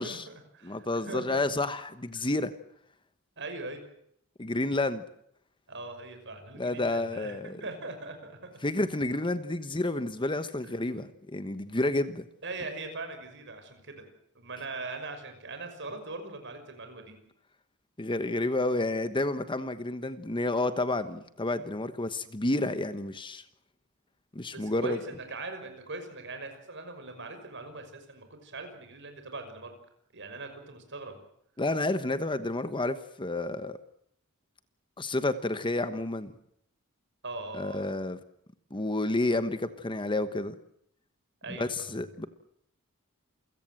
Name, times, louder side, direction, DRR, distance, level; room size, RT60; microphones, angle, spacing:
voice 1, 0.0-1.5 2.2-2.3 3.4-3.8 5.7-8.6 10.6-10.7 12.4-14.1 14.3-17.2 24.5-29.7 30.1-31.2 37.2-37.9 41.4-41.9, right 3 dB, 55° right, 7 dB, 5.9 m, -41 dB
voice 2, 0.6-2.5 4.4-5.0 6.6-7.6 8.6-12.3 18.0-23.4 24.3-25.0 31.6-33.8 35.0-36.3 37.5-38.2 38.7-40.5 41.5-42.3, left 2 dB, 25° left, 11 dB, 1.1 m, -30 dB
28.5 x 16.5 x 7.8 m, 0.72 s
head